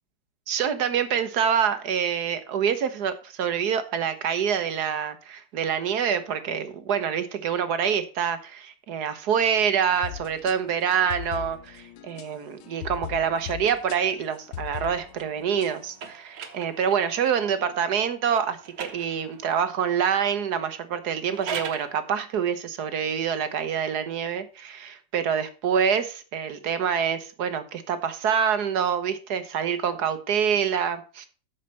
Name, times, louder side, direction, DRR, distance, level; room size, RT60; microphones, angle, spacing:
voice 1, 0.5-31.3, right 7 dB, 55° right, 1.4 m, -26 dB
sound 1, 9.9-15.7, left 12 dB, 85° left, 1.6 m, -40 dB
sound 2, 13.4-17.5 18.3-19.7 21.1-21.9, right 6 dB, 80° right, 2.1 m, -40 dB
8.9 x 6.6 x 5.6 m
omnidirectional pair, 2.2 m